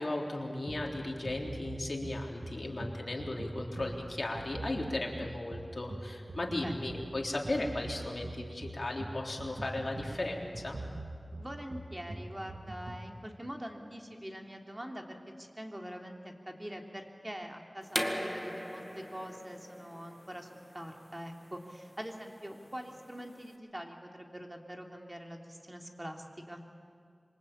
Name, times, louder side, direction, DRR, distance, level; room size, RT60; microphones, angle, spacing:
voice 1, 0.0-10.8, left 2 dB, 60° left, 0 dB, 3.8 m, -36 dB
sound 1, 0.7-13.1, right 1 dB, 65° right, 1.9 m, -43 dB
voice 2, 11.4-20.5 20.7-26.6, equal, 20° right, 2 dB, 3.2 m, -44 dB
sound 2, 17.9-23.5, equal, 5° left, 2.2 m, -40 dB
27.0 x 24.0 x 8.8 m, 2.2 s
wide cardioid pair, 50°, 0 cm